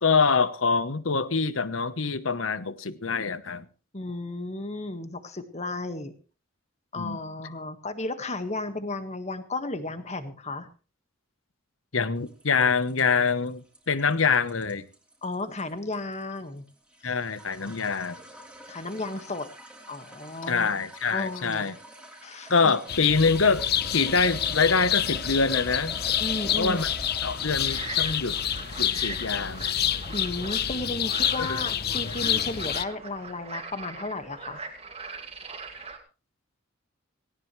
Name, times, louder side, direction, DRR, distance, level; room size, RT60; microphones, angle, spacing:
voice 1, 0.0-3.6 7.0-7.2 11.9-14.9 17.0-18.2 20.5-21.7 22.5-23.7 23.9-25.9 26.6-26.9 27.2-28.4 28.8-29.7 31.4-31.6, left 5 dB, 70° left, 1.1 m, -25 dB
voice 2, 3.9-6.1 6.9-10.7 15.2-16.6 17.0-17.1 18.7-19.4 19.9-20.7 21.1-21.7 22.2-22.5 26.2-26.8 30.1-34.6, left 2 dB, 35° left, 1.7 m, -34 dB
sound 1, 12.3-29.4, right 1 dB, 5° right, 3.0 m, -46 dB
sound 2, 22.9-32.8, left 10 dB, 50° left, 0.7 m, -28 dB
sound 3, 27.7-36.0, right 4 dB, 30° right, 2.4 m, -41 dB
18.0 x 17.0 x 3.2 m
head